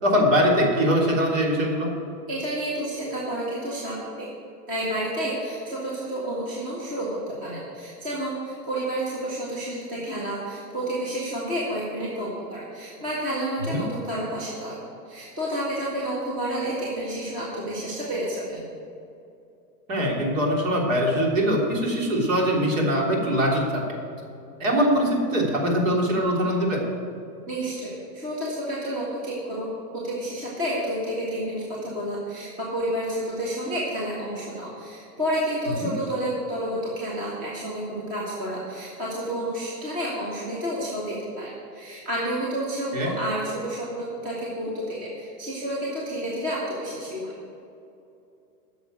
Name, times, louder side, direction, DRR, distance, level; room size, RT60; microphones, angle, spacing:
voice 1, 0.0-1.9 13.7-13.8 19.9-23.8 24.6-26.8 35.8-35.9 42.9-43.1, equal, 50° right, -2 dB, 3.3 m, -22 dB
voice 2, 2.3-4.3 4.7-14.8 15.0-18.6 27.5-29.7 30.0-47.3, right 1 dB, 15° right, -6 dB, 1.6 m, -30 dB
10.0 x 7.0 x 9.0 m, 2.6 s
hypercardioid pair, 170°, 49 cm